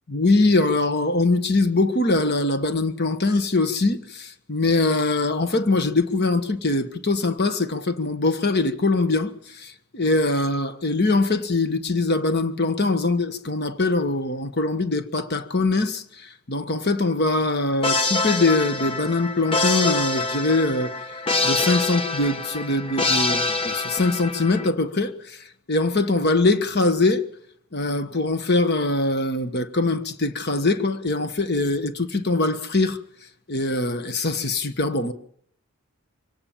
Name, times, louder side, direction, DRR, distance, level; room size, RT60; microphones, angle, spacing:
voice 1, 0.1-20.9 21.4-27.3 27.7-33.0 33.5-35.1, left 2 dB, 45° left, 1.4 m, -22 dB
sound 1, 17.8-24.7, left 3 dB, 25° left, 1.2 m, -25 dB
25.0 x 17.5 x 7.3 m
head